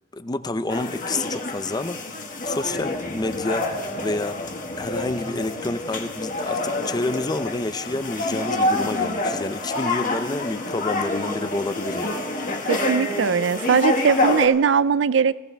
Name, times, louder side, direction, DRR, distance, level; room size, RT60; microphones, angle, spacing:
voice 1, 0.1-2.1 2.4-4.4 4.8-12.2, left 2 dB, 20° left, 0.6 m, -28 dB
sound 1, 0.7-14.5, left 2 dB, 45° left, 1.7 m, -27 dB
voice 2, 12.7-15.3, right 6 dB, 90° right, 0.4 m, -20 dB
20.5 x 16.5 x 3.4 m
head